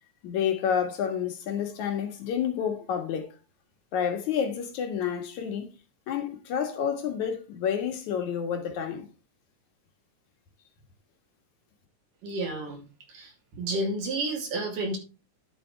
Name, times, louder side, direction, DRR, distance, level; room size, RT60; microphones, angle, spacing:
voice 1, 0.2-3.3 3.9-5.7 6.1-9.1, left 8 dB, 65° left, 2.8 m, -29 dB
voice 2, 12.2-12.8 13.1-13.3 13.6-15.0, right 2 dB, 80° right, 4.5 m, -30 dB
11.5 x 7.7 x 3.4 m
omnidirectional pair, 3.7 m